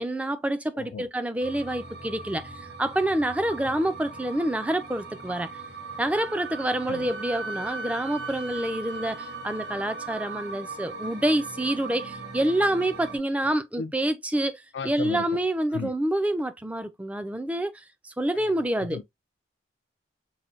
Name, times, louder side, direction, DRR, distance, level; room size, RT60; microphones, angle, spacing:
voice 1, 0.0-5.5 6.0-19.0, right 1 dB, 5° right, 0.3 m, -27 dB
voice 2, 0.7-1.1 6.9-7.1 13.8-13.9 14.7-15.4 15.7-15.9 18.8-19.0, left 5 dB, 70° left, 0.3 m, -35 dB
sound 1, 1.4-13.2, right 3 dB, 60° right, 1.6 m, -40 dB
Wind instrument woodwind instrument, 6.1-10.5, right 3 dB, 80° right, 0.7 m, -40 dB
5.6 x 2.2 x 2.4 m
head